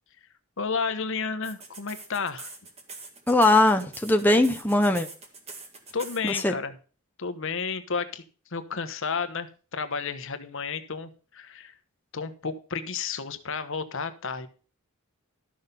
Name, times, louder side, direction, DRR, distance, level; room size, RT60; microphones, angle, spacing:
voice 1, 0.6-2.5 5.9-6.7 7.2-8.2 8.5-11.7 12.1-14.5, left 5 dB, 60° left, 1.1 m, -32 dB
sound 1, 1.4-6.4, right 3 dB, 30° right, 2.0 m, -43 dB
voice 2, 3.3-5.1 6.2-6.5, left 2 dB, 10° left, 0.7 m, -20 dB
12.5 x 6.4 x 5.2 m
head